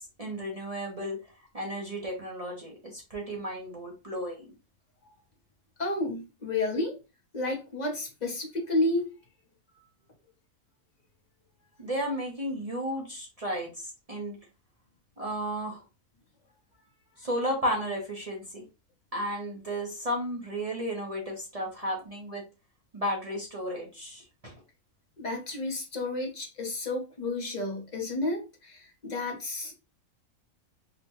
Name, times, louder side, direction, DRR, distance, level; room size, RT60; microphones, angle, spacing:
voice 1, 0.2-1.2 1.5-4.5 11.8-14.4 15.2-15.8 17.2-18.6 19.1-22.4 22.9-24.5, equal, 35° right, -2 dB, 0.6 m, -33 dB
voice 2, 5.8-7.0 7.3-9.1 25.2-29.7, left 2 dB, 40° left, 1 dB, 0.7 m, -31 dB
4.0 x 2.1 x 2.9 m, 0.28 s
omnidirectional pair, 1.6 m